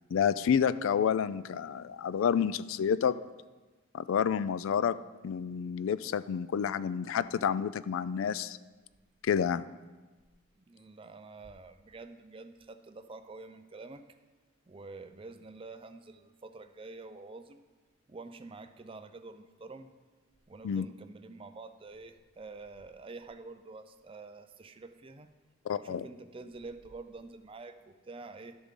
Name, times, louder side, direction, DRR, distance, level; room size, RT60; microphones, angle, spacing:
voice 1, 0.1-3.2 3.9-5.0 5.2-8.6 9.2-9.7 20.6-20.9 25.7-26.1, left 7 dB, 65° left, 16 dB, 0.3 m, -29 dB
voice 2, 10.7-14.0 14.7-17.6 18.1-19.9 20.5-25.3 25.7-28.6, right 3 dB, 25° right, 9 dB, 0.4 m, -47 dB
12.0 x 7.0 x 3.7 m, 1.3 s
head